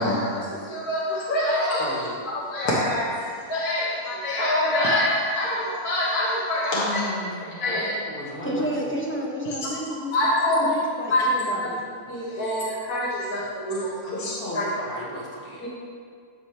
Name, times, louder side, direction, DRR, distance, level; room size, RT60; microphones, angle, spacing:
voice 1, 0.0-3.1 3.5-7.0 7.6-7.9 10.1-10.6 11.1-11.2 12.1-14.6 15.6-15.7, left 1 dB, 75° left, -6 dB, 1.7 m, -25 dB
voice 2, 1.8-2.2 6.7-9.0 14.1-15.7, left 1 dB, 40° left, -6 dB, 1.8 m, -36 dB
voice 3, 8.4-10.1 10.5-11.8, equal, 10° left, -3 dB, 0.7 m, -30 dB
13.5 x 4.8 x 2.8 m, 2.1 s
omnidirectional pair, 1.6 m